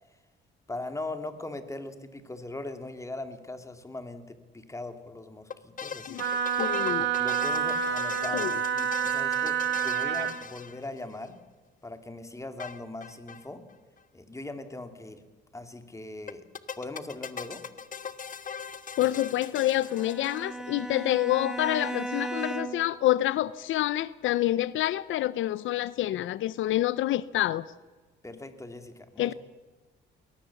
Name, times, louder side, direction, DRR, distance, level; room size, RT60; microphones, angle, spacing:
voice 1, 0.7-6.4 7.2-9.6 9.8-11.4 11.8-13.6 14.1-15.2 15.5-16.4 16.8-17.6 28.2-29.3, left 2 dB, 15° left, 8 dB, 2.5 m, -40 dB
sound 1, 5.5-11.3 12.6-13.4 13.7-13.8 14.0-14.1 16.3-20.8, left 7 dB, 40° left, 1.3 m, -41 dB
Wind instrument woodwind instrument, 6.2-10.4, right 8 dB, 65° right, 2.3 m, -28 dB
voice 2, 6.6-7.1 8.3-8.5 19.0-27.6 29.2-29.3, left 14 dB, 75° left, 18 dB, 0.6 m, -27 dB
Bowed string instrument, 19.9-23.0, right 2 dB, 5° right, 1.8 m, -36 dB
21.5 x 18.5 x 7.1 m, 1.3 s
cardioid pair, 90°, 20 cm